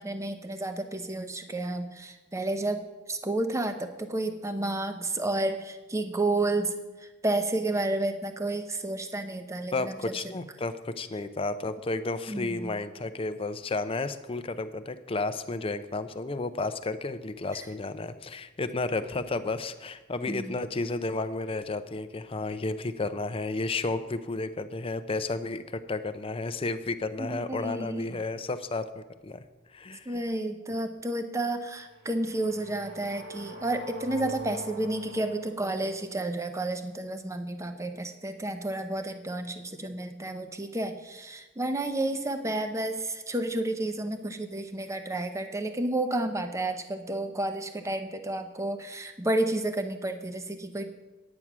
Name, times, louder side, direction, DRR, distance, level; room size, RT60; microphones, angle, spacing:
voice 1, 0.0-2.8 3.1-10.0 12.3-12.7 20.3-20.6 27.2-28.2 30.1-50.9, right 2 dB, 15° right, 7 dB, 0.7 m, -31 dB
voice 2, 9.7-29.4 29.7-30.2, left 3 dB, 25° left, 11 dB, 0.5 m, -32 dB
sound 1, 31.8-36.1, right 1 dB, 60° right, 2.2 m, -43 dB
9.5 x 8.7 x 6.0 m, 1.2 s
head